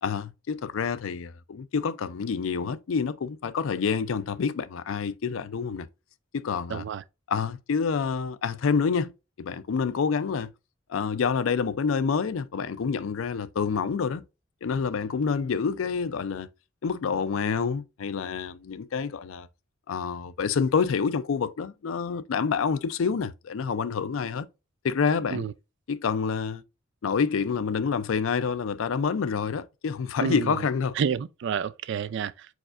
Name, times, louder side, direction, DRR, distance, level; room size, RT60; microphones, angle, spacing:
voice 1, 0.0-5.9 6.3-6.8 7.3-9.1 9.4-10.5 10.9-14.2 14.6-16.5 16.8-19.5 19.9-24.5 24.8-25.4 25.9-26.6 27.0-30.9, left 5 dB, 80° left, 0.4 m, -27 dB
voice 2, 6.7-7.0 25.3-25.5 30.2-30.6 31.0-32.5, right 7 dB, 60° right, 0.3 m, -29 dB
4.8 x 4.2 x 2.5 m
head